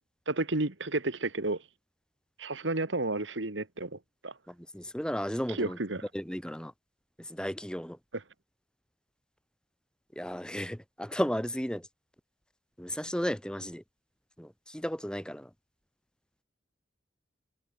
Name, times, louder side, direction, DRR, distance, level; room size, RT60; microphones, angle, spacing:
voice 1, 0.3-1.6 2.4-4.3 5.5-6.0 8.1-8.2, right 2 dB, 75° right, 2.0 m, -32 dB
voice 2, 4.5-5.8 6.1-6.7 7.3-8.0 10.2-11.9 12.8-13.8 14.4-15.5, equal, 5° left, 2.8 m, -34 dB
head